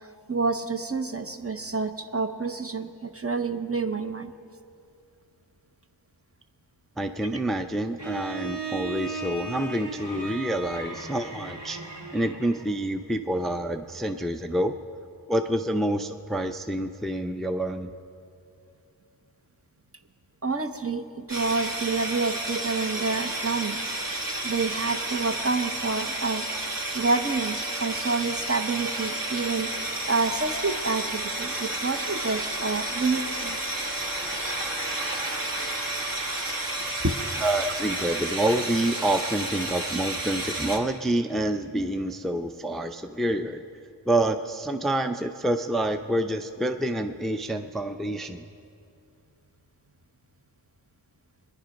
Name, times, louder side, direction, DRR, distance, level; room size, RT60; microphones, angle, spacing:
voice 1, 0.3-4.3 20.4-23.8 24.4-26.4 26.9-29.7 30.0-33.8 36.6-36.7 37.0-37.2 37.6-37.8, right 4 dB, 35° right, 7 dB, 0.8 m, -28 dB
voice 2, 7.0-11.8 12.1-14.7 15.3-17.9 37.4-43.6 44.1-48.4, right 1 dB, ahead, 7 dB, 0.5 m, -27 dB
Bowed string instrument, 8.0-12.9, right 3 dB, 75° right, 1.6 m, -36 dB
sound 1, 21.3-40.8, right 2 dB, 50° right, 1.7 m, -31 dB
22.5 x 10.5 x 5.2 m, 2.5 s
wide cardioid pair, 40°, 43 cm